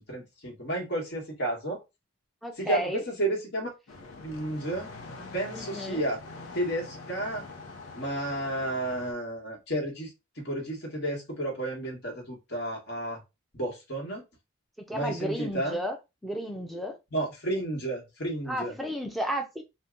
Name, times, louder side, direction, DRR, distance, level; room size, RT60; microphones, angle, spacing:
voice 1, 0.0-1.8 2.6-3.7 4.2-4.9 5.3-6.2 6.5-7.4 7.9-13.2 13.5-14.2 14.9-15.8 17.1-18.7, right 1 dB, 50° left, 1.2 m, -32 dB
voice 2, 2.4-3.0 5.5-6.0 14.9-16.0 16.2-17.0 18.5-19.6, equal, ahead, 0.5 m, -33 dB
sound 1, 3.9-9.1, left 3 dB, 70° left, 0.7 m, -44 dB
2.7 x 2.2 x 3.6 m
head